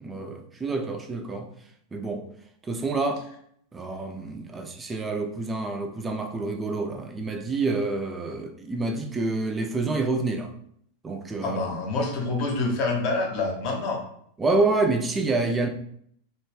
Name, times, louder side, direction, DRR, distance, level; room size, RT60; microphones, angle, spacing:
voice 1, 0.0-1.5 1.9-2.3 2.7-3.3 3.7-10.5 11.0-11.6 14.4-15.7, right 3 dB, 15° right, 0.4 m, -27 dB
voice 2, 11.4-14.0, left 3 dB, 40° left, 0.8 m, -27 dB
2.5 x 2.2 x 3.3 m
figure-of-eight pair, 90°, 0 cm